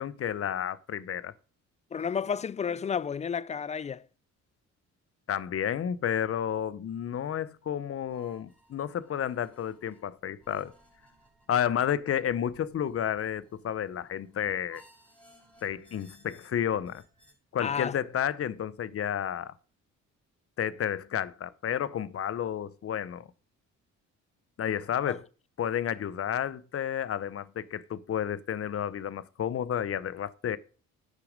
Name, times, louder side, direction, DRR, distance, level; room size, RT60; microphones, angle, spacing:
voice 1, 0.0-1.3 5.3-10.7 11.5-14.8 15.6-17.0 17.5-19.5 20.6-23.3 24.6-25.2 25.6-30.6, left 9 dB, 50° left, 0.8 m, -31 dB
voice 2, 1.9-4.0 17.6-17.9 25.1-25.2, left 7 dB, 25° left, 0.3 m, -31 dB
sound 1, 8.0-17.3, left 1 dB, 5° left, 5.1 m, -60 dB
10.0 x 6.6 x 5.2 m
cardioid pair, 90°, 30 cm